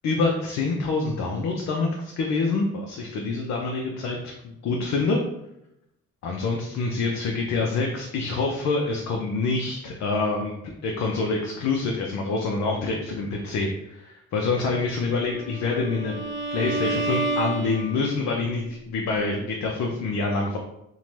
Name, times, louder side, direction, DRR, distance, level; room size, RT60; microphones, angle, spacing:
voice 1, 0.0-4.3 4.6-5.2 6.2-10.5 10.8-16.1 16.5-20.6, left 3 dB, 65° left, 0 dB, 0.5 m, -26 dB
Bowed string instrument, 15.2-18.3, right 2 dB, 40° right, 0.7 m, -30 dB
2.7 x 2.1 x 3.1 m, 0.83 s
cardioid pair, 90°, 30 cm